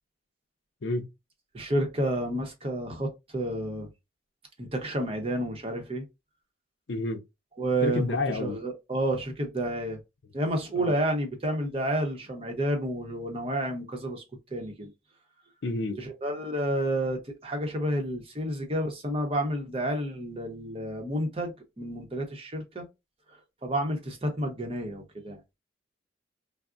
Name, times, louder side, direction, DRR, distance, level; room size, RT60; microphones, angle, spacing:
voice 1, 1.5-3.9 4.6-6.1 7.6-10.0 10.3-14.2 14.5-14.9 16.0-22.9 23.6-25.4, right 1 dB, 30° right, 0.7 m, -30 dB
voice 2, 6.9-7.2 7.8-8.6 10.8-10.9 15.6-16.0, left 2 dB, 80° left, 0.5 m, -29 dB
3.5 x 2.0 x 2.4 m
head